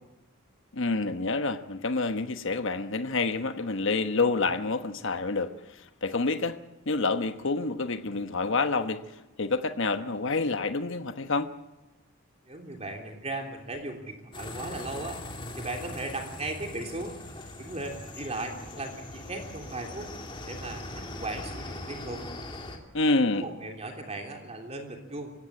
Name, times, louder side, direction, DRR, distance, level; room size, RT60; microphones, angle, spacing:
voice 1, 0.7-6.6 6.9-9.0 9.4-11.5 22.9-23.5, left 3 dB, 60° left, 9 dB, 1.2 m, -28 dB
voice 2, 12.5-15.2 15.6-17.2 17.6-20.1 20.5-22.2 23.4-25.3, right 2 dB, 30° right, 2 dB, 3.2 m, -37 dB
sound 1, 14.3-22.8, left 2 dB, 25° left, 2.9 m, -41 dB
24.0 x 16.5 x 8.7 m, 1.0 s
head